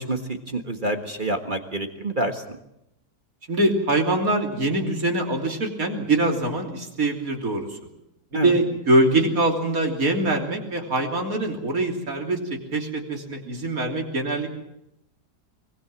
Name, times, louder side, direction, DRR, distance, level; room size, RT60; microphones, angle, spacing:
voice 1, 0.0-2.4 8.3-8.5, right 1 dB, 30° right, 6 dB, 1.7 m, -27 dB
voice 2, 3.5-7.7 8.4-14.6, right 2 dB, 60° right, 2 dB, 3.6 m, -23 dB
24.0 x 21.0 x 7.4 m, 0.82 s
omnidirectional pair, 1.7 m